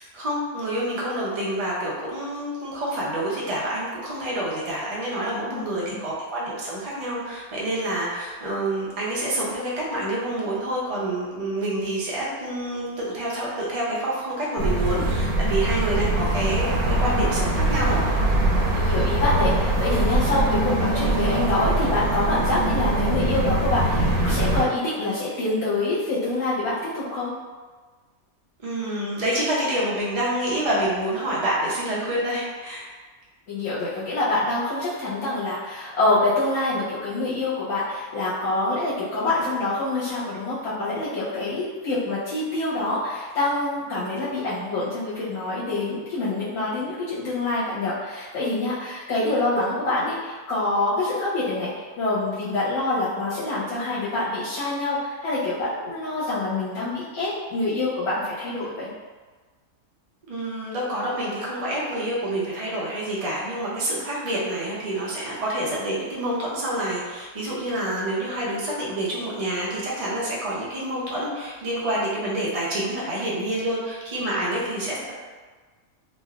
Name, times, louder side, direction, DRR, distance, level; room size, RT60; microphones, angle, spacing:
voice 1, 0.0-18.0 28.6-32.9 60.3-75.1, right 1 dB, 55° right, -6 dB, 0.4 m, -27 dB
voice 2, 5.5-6.0 18.7-27.3 33.5-58.9, left 2 dB, 85° left, -10 dB, 1.3 m, -26 dB
sound 1, 14.6-24.7, right 1 dB, 75° right, 1.0 m, -22 dB
3.2 x 2.4 x 2.3 m, 1.4 s
omnidirectional pair, 1.6 m